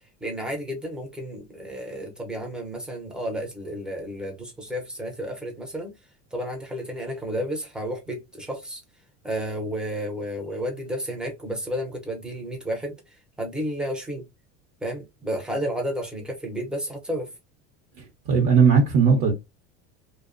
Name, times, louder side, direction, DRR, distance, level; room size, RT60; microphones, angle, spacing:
voice 1, 0.2-5.9 6.3-8.8 9.2-14.2 14.8-17.3, equal, ahead, 0.5 m, -32 dB
voice 2, 18.0-19.3, right 5 dB, 55° right, 0.8 m, -18 dB
2.5 x 2.1 x 2.4 m
cardioid pair, 135°, 35 cm